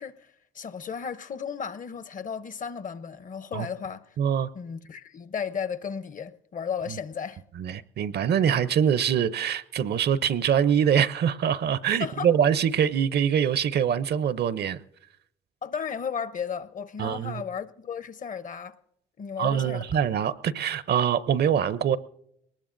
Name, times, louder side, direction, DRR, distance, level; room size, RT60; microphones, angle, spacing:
voice 1, 0.0-4.2 4.5-7.4 12.0-12.3 15.6-18.8 19.2-20.0, left 7 dB, 40° left, 0.7 m, -34 dB
voice 2, 4.2-4.5 7.6-14.8 17.0-17.4 19.4-22.0, right 8 dB, 55° right, 0.6 m, -24 dB
21.5 x 19.5 x 2.5 m
cardioid pair, 90°, 20 cm